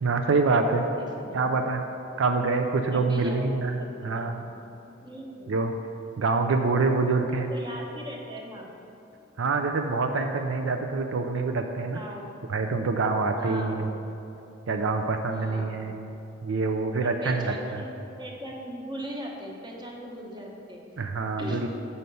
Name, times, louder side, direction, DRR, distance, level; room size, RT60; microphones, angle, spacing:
voice 1, 0.0-0.8 1.3-1.8 2.2-4.4 5.5-5.7 6.2-7.5 9.4-12.0 12.5-13.9 14.7-16.1 16.4-17.9 21.0-21.7, right 3 dB, 70° right, 5 dB, 0.4 m, -26 dB
voice 2, 1.0-1.5 2.9-3.5 3.8-4.3 5.0-5.5 7.3-8.7 11.9-12.3 13.4-14.0 15.3-15.8 17.0-17.9 18.2-20.8 21.4-21.7, equal, 20° right, 0 dB, 1.0 m, -39 dB
7.7 x 5.6 x 5.4 m, 2.9 s
head